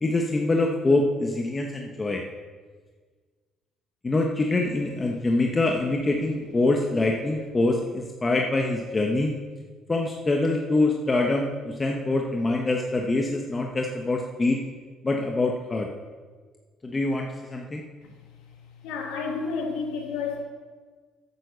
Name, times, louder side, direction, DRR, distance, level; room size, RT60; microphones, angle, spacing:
voice 1, 0.0-2.2 4.0-9.3 9.9-14.6 15.0-15.9 16.8-17.8, left 2 dB, 25° left, 1 dB, 1.2 m, -25 dB
voice 2, 18.8-20.4, left 4 dB, 85° left, 2 dB, 2.0 m, -30 dB
9.1 x 8.5 x 7.0 m, 1.5 s
supercardioid pair, 75°, 0 cm